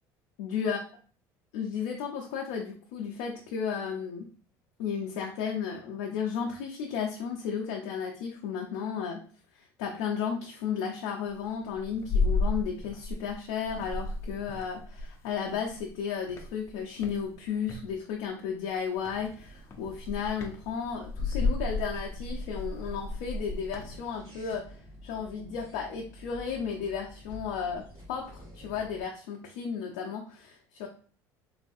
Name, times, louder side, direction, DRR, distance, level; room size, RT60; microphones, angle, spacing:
voice 1, 0.4-0.8 1.5-4.3 4.8-9.2 9.5-24.8 25.0-30.9, left 7 dB, 85° left, -1 dB, 0.5 m, -34 dB
sound 1, 11.3-13.4 13.6-15.9 16.3-17.9 19.0-19.3 19.7-23.9, left 3 dB, 35° left, 0.5 m, -32 dB
sound 2, 19.1-29.0, equal, 85° right, 1.5 m, -50 dB
3.3 x 2.3 x 2.6 m, 0.41 s
supercardioid pair, 110°, 8 cm